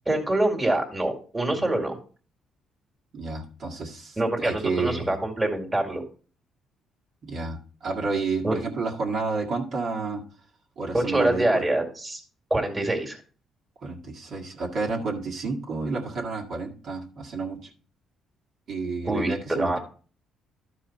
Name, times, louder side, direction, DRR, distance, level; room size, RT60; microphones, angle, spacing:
voice 1, 0.1-2.0 4.2-6.0 8.4-8.6 10.9-12.2 12.5-13.2 19.0-19.8, right 1 dB, 15° right, 2 dB, 2.1 m, -25 dB
voice 2, 3.1-5.2 7.2-10.2 10.8-11.6 13.8-17.7 18.7-19.8, right 3 dB, 55° right, -1 dB, 1.9 m, -30 dB
12.0 x 4.8 x 4.2 m, 0.40 s
cardioid pair, 110°, 0 cm